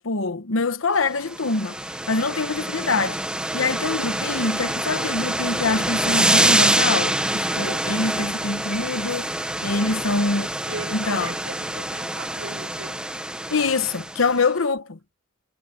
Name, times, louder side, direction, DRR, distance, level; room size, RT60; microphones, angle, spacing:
voice 1, 0.0-1.8 2.1-3.2 3.5-9.3 9.6-10.5 10.9-11.3 13.5-15.0, left 3 dB, 75° left, 1.1 m, -24 dB
sound 1, 1.2-14.4, right 1 dB, 5° right, 1.0 m, -25 dB
voice 2, 9.8-10.2 10.7-13.1, right 3 dB, 90° right, 4.9 m, -39 dB
head